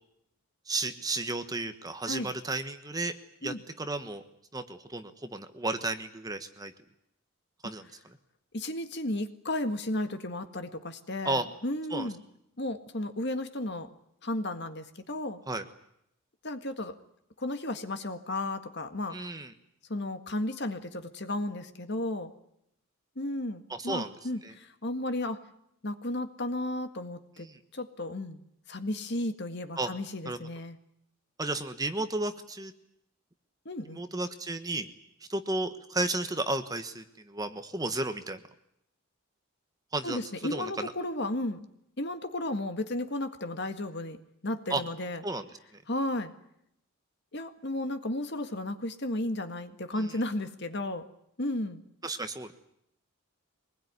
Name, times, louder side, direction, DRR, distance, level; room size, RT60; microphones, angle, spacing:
voice 1, 0.7-3.1 3.4-4.2 4.5-6.7 7.6-7.8 11.2-11.4 11.9-12.1 15.5-15.6 19.1-19.5 23.8-24.1 24.4-24.5 27.4-27.6 29.8-29.9 30.2-30.4 31.4-32.7 33.9-34.9 35.3-38.4 39.9-40.9 44.7-44.8 45.2-45.4 50.0-50.1 52.0-52.5, right 2 dB, 15° right, 8 dB, 1.2 m, -33 dB
voice 2, 8.5-12.2 12.6-13.9 14.2-15.4 16.4-17.0 17.4-19.2 19.9-22.3 23.2-25.4 25.8-27.5 27.7-28.4 28.7-30.8 33.7-34.0 40.0-41.7 42.0-44.2 44.4-45.2 45.9-46.3 47.3-51.1 51.4-51.8, left 1 dB, 50° left, 8 dB, 1.8 m, -34 dB
24.0 x 20.5 x 9.7 m, 0.77 s
head